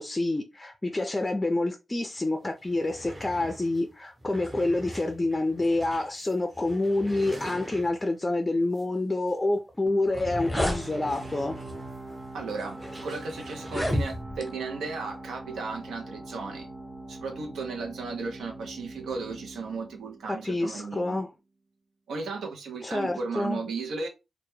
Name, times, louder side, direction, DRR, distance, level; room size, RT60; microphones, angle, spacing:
voice 1, 0.0-11.6 20.4-21.3 22.8-23.6, left 2 dB, 25° left, 0.4 m, -28 dB
sound 1, 2.2-2.3 2.5-8.2 8.7-8.9 9.3-9.4 10.3-14.2, right 1 dB, 25° right, 0.8 m, -45 dB
sound 2, 9.7-9.8 10.1-10.8 11.7-11.9 12.6-12.7 13.6-14.5, left 1 dB, ahead, 0.9 m, -29 dB
sound 3, 9.9-21.2, right 2 dB, 65° right, 1.1 m, -43 dB
voice 2, 12.3-16.7 17.1-21.2 22.1-24.1, right 4 dB, 85° right, 0.5 m, -35 dB
2.1 x 2.1 x 3.1 m
cardioid pair, 55°, 0 cm